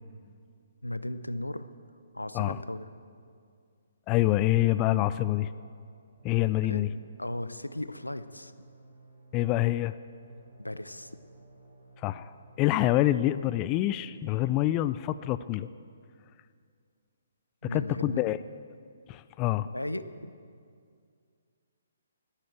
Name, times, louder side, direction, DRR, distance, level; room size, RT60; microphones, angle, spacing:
voice 1, 0.8-1.7 2.1-2.9 6.6-8.5 10.6-11.2 17.6-18.3 19.6-20.3, left 1 dB, 90° left, 13 dB, 0.7 m, -36 dB
voice 2, 4.1-5.5 6.2-6.9 9.3-9.9 12.0-12.3 12.6-15.7 17.7-18.4 19.1-19.7, left 15 dB, 25° left, 14 dB, 0.3 m, -26 dB
sound 1, 6.0-15.4, right 2 dB, 85° right, 4.3 m, -56 dB
12.5 x 10.5 x 7.7 m, 2.3 s
figure-of-eight pair, 130°, 0 cm